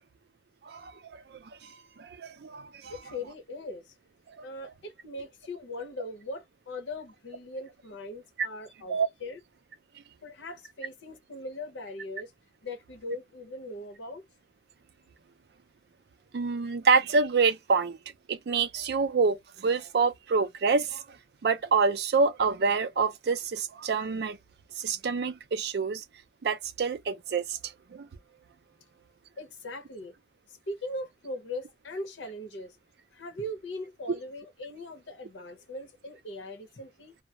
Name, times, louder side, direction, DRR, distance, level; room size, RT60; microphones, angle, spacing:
voice 1, 0.6-1.7 2.0-2.9 4.4-4.7 8.4-8.5 8.9-9.1 16.3-18.0 18.3-21.2 21.4-24.4 24.8-26.0 26.4-28.1, right 4 dB, 60° right, 0.4 m, -27 dB
voice 2, 2.9-3.9 4.4-9.4 10.2-12.3 12.6-14.2 29.4-30.1 30.5-32.8 33.1-37.2, left 1 dB, 90° left, 0.8 m, -40 dB
2.3 x 2.0 x 2.8 m
head